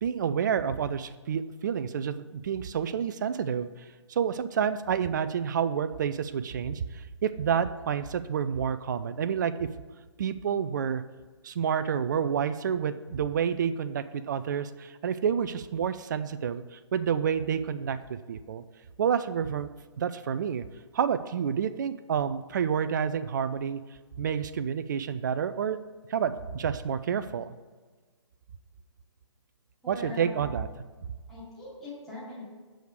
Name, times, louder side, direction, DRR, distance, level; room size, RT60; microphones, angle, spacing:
voice 1, 0.0-3.7 4.1-9.7 10.2-11.0 11.4-18.6 19.0-19.7 20.0-20.6 20.9-23.8 24.2-25.8 26.1-27.5 29.9-30.7, right 7 dB, 40° right, 12 dB, 0.4 m, -29 dB
voice 2, 29.8-30.6 31.3-32.5, left 2 dB, ahead, -10 dB, 2.7 m, -41 dB
7.8 x 4.9 x 6.5 m, 1.4 s
figure-of-eight pair, 135°, 15 cm